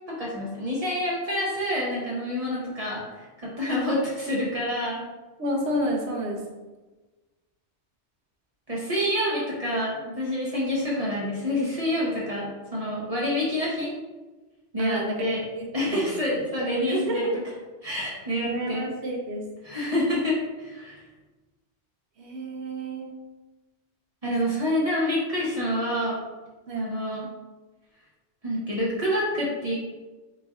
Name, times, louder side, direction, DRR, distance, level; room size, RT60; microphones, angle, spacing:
voice 1, 0.1-5.0 8.7-13.9 14.7-15.4 15.7-17.3 17.8-18.9 19.6-21.0 24.2-26.2 26.7-27.3 28.4-29.7, left 1 dB, 35° right, -6 dB, 0.7 m, -27 dB
voice 2, 5.4-6.4 12.8-13.0 14.8-15.2 15.5-16.1 16.9-17.3 18.4-19.5 22.2-23.1 26.7-26.9, right 1 dB, 75° right, 1 dB, 1.0 m, -30 dB
3.9 x 3.2 x 2.4 m, 1.2 s
omnidirectional pair, 1.2 m